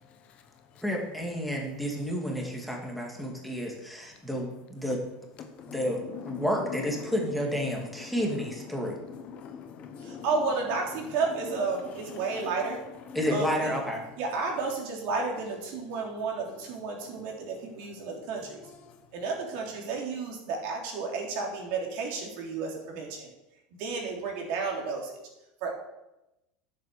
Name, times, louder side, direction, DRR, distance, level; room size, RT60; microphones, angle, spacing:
voice 1, 0.8-5.0 5.7-6.0 6.3-9.0 13.1-14.0, equal, ahead, -1 dB, 2.3 m, -30 dB
voice 2, 5.4-6.5 8.1-8.3 8.7-10.2 13.1-13.2 15.9-16.0, left 7 dB, 40° left, 7 dB, 1.1 m, -43 dB
voice 3, 10.0-12.8 13.3-13.8 14.2-18.6 19.1-23.3 23.8-25.2 25.6-25.7, right 4 dB, 60° right, 0 dB, 3.4 m, -32 dB
10.5 x 7.7 x 6.8 m, 0.93 s
supercardioid pair, 155°, 4 cm